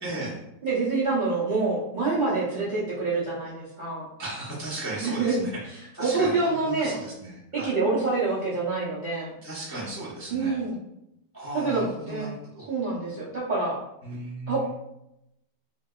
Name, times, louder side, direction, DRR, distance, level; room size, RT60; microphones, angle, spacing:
voice 1, 0.0-0.4 4.2-7.7 9.4-10.6 11.3-12.7 14.0-14.7, right 2 dB, 15° left, -8 dB, 0.4 m, -36 dB
voice 2, 0.6-4.1 5.0-5.4 6.0-7.0 7.5-9.3 10.3-10.8 11.5-12.3 12.7-13.8 14.5-14.7, right 3 dB, 55° right, -9 dB, 0.5 m, -26 dB
3.2 x 2.8 x 2.3 m, 0.84 s
omnidirectional pair, 1.9 m